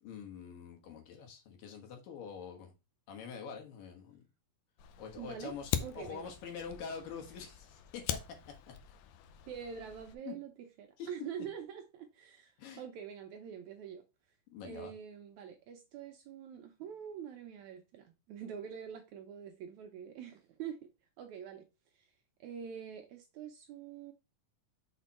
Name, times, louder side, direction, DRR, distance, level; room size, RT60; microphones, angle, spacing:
voice 1, 0.0-2.7 3.1-4.2 5.0-8.2 10.3-10.4 11.0-11.1 12.6-12.8 14.5-14.9, left 6 dB, 70° left, 3.0 m, -45 dB
Fire, 4.8-10.2, left 10 dB, 90° left, 1.6 m, -42 dB
voice 2, 5.2-6.3 9.5-14.0 14.6-20.9 21.2-21.6 21.9-22.1 22.4-24.1, right 8 dB, 80° right, 1.7 m, -45 dB
6.0 x 4.4 x 4.1 m
omnidirectional pair, 4.1 m